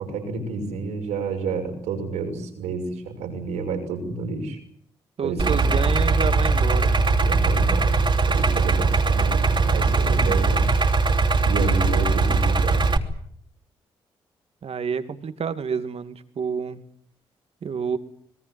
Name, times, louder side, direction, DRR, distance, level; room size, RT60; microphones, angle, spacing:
voice 1, 0.0-4.6 5.2-5.6 7.2-10.7 11.4-12.9, right 4 dB, 85° right, 5 dB, 6.1 m, -30 dB
voice 2, 5.2-7.0 14.6-16.8 17.6-18.0, right 6 dB, 60° right, 10 dB, 2.5 m, -29 dB
Idling, 5.4-13.0, right 3 dB, 45° right, 3.1 m, -20 dB
26.0 x 22.0 x 7.8 m, 0.66 s
hypercardioid pair, 40°, 12 cm